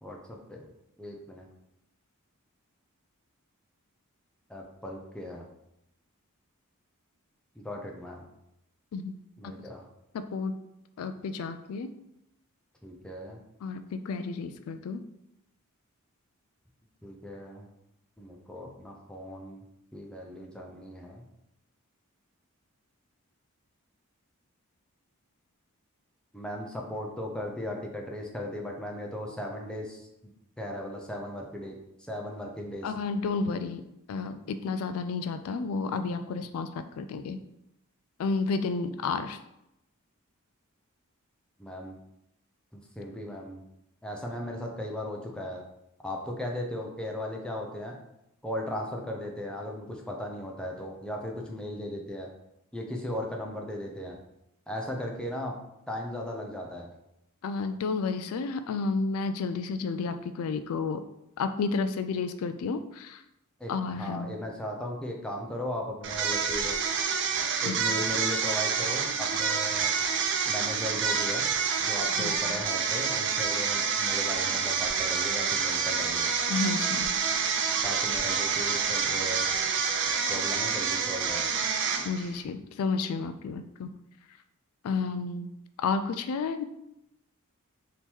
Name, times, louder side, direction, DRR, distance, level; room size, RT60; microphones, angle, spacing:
voice 1, 0.0-0.7 1.0-1.5 4.5-5.5 7.6-8.3 9.4-9.8 12.8-13.4 17.0-17.7 18.2-19.6 19.9-21.2 26.3-30.1 30.6-32.9 41.6-42.0 42.7-43.6 44.0-45.6 46.0-47.9 48.4-52.3 52.7-54.2 54.7-55.6 55.9-56.9 63.6-66.8 67.6-69.9 70.4-71.5 71.8-76.3 77.8-79.5 80.3-81.5, left 1 dB, 5° left, 0 dB, 0.5 m, -37 dB
voice 2, 10.1-10.6 11.0-11.9 13.6-15.0 32.8-37.4 38.2-39.4 57.4-61.0 61.4-63.2 63.7-64.3 67.6-67.8 72.1-72.6 76.5-77.2 82.0-83.9 84.8-85.5 85.8-86.6, left 4 dB, 75° left, 10 dB, 0.3 m, -31 dB
sound 1, 66.0-82.4, right 6 dB, 55° right, 0.5 m, -28 dB
3.5 x 2.8 x 4.4 m, 0.84 s
head